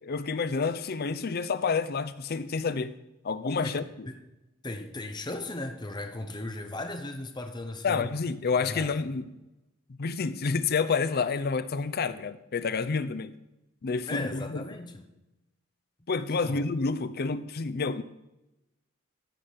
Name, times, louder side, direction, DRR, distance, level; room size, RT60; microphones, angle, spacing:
voice 1, 0.0-3.0 3.2-4.1 7.8-9.3 10.0-13.3 13.8-14.6 16.1-18.0, left 4 dB, 50° left, 14 dB, 0.5 m, -29 dB
voice 2, 4.6-8.1 8.6-9.1 14.1-15.1 16.4-16.6, left 2 dB, 20° left, 6 dB, 0.8 m, -37 dB
14.0 x 5.1 x 5.8 m, 0.95 s
head